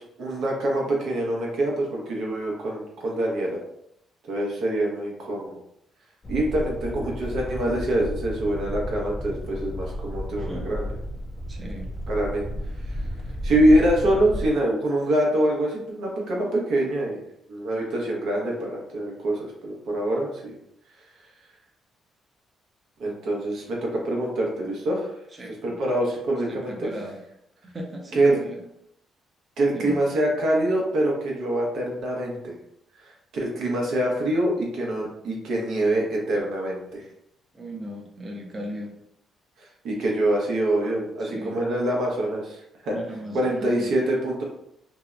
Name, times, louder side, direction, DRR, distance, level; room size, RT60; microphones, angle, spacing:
voice 1, 0.0-3.6 4.3-5.6 6.3-10.8 12.1-12.5 12.9-13.0 13.4-17.2 17.5-20.5 23.0-25.1 25.6-26.9 28.1-28.4 29.6-32.6 33.0-37.1 39.6-43.0 43.3-44.4, right 1 dB, 75° right, -2 dB, 0.7 m, -25 dB
sound 1, 6.2-14.5, equal, 30° left, 0.4 m, -33 dB
voice 2, 11.5-11.9 25.3-25.5 26.5-27.2 27.7-28.6 29.7-30.0 37.5-38.9 41.2-41.6 42.9-43.9, right 1 dB, 30° right, -1 dB, 0.5 m, -37 dB
2.7 x 2.0 x 2.4 m, 0.77 s
cardioid pair, 90°, 0 cm